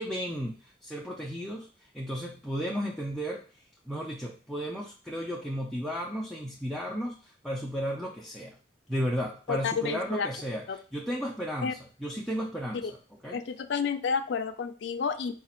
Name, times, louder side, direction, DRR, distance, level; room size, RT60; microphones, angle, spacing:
voice 1, 0.0-3.4 3.9-8.5 8.9-10.6 10.9-12.8 13.2-13.4, equal, ahead, -2 dB, 0.5 m, -34 dB
voice 2, 9.5-10.3 10.7-10.8 11.6-11.7 12.8-12.9 13.3-15.3, left 6 dB, 75° left, 7 dB, 0.4 m, -30 dB
4.8 x 2.4 x 4.3 m, 0.39 s
head